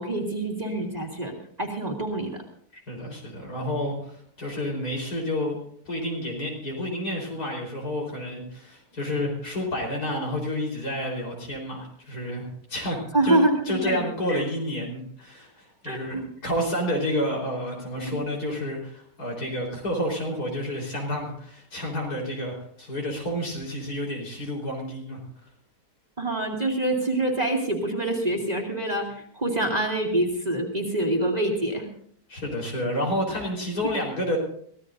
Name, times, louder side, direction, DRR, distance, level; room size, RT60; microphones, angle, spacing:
voice 1, 0.0-1.3 1.6-2.4 13.1-14.0 14.3-14.4 15.9-16.3 18.1-18.2 26.2-31.9, right 1 dB, 25° right, 0 dB, 2.5 m, -26 dB
voice 2, 2.7-5.5 5.8-13.4 13.7-25.2 32.3-34.4, left 1 dB, 70° left, 0 dB, 5.0 m, -30 dB
24.0 x 16.5 x 2.7 m, 0.63 s
omnidirectional pair, 1.7 m